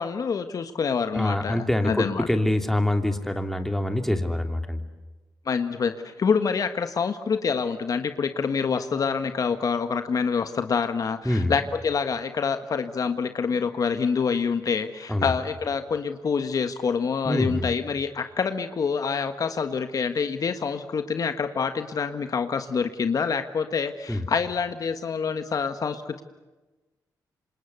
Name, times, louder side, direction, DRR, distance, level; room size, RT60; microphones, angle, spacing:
voice 1, 0.0-2.3 5.4-26.2, left 5 dB, 55° left, 9 dB, 1.5 m, -26 dB
voice 2, 1.1-4.8 11.2-11.5 15.1-15.3 17.3-17.7 24.1-24.2, left 1 dB, 5° left, 6 dB, 2.9 m, -25 dB
27.5 x 26.5 x 8.1 m, 1.1 s
cardioid pair, 85°, 7 cm